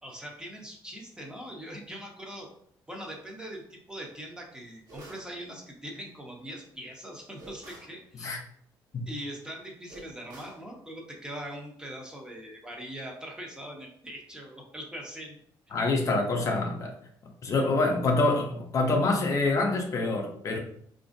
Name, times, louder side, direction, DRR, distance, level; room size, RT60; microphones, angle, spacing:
voice 1, 0.0-2.5 2.9-8.3 9.1-15.4 15.7-15.8, equal, 10° right, 0 dB, 0.7 m, -41 dB
sound 1, 4.9-5.3 7.4-8.0 9.9-10.6, right 1 dB, 50° right, 1.2 m, -47 dB
voice 2, 15.7-17.0 17.4-20.6, left 2 dB, 40° left, 2 dB, 0.5 m, -26 dB
4.1 x 2.5 x 2.5 m, 0.66 s
cardioid pair, 135°, 8 cm